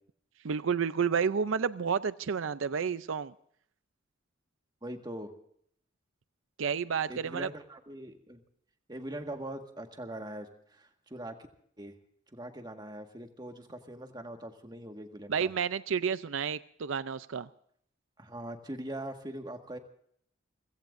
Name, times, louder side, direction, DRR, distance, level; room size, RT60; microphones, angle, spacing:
voice 1, 0.4-3.3 6.6-7.5 15.3-17.5, right 6 dB, 80° right, 0.5 m, -30 dB
voice 2, 4.8-5.3 7.1-8.4 8.9-11.5 11.8-11.9 12.3-15.5 18.2-19.8, right 1 dB, 20° right, 1.7 m, -42 dB
29.5 x 16.5 x 2.6 m
head